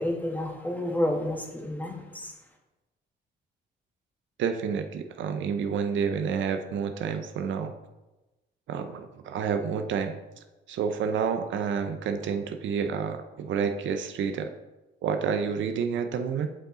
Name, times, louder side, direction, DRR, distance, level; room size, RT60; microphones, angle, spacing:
voice 1, 0.0-2.3, left 1 dB, 10° left, 0 dB, 1.5 m, -30 dB
voice 2, 4.4-7.7 8.7-10.2 10.7-14.5 15.0-16.5, right 6 dB, 70° right, 8 dB, 0.6 m, -29 dB
7.3 x 5.5 x 3.8 m, 1.1 s
cardioid pair, 90°, 20 cm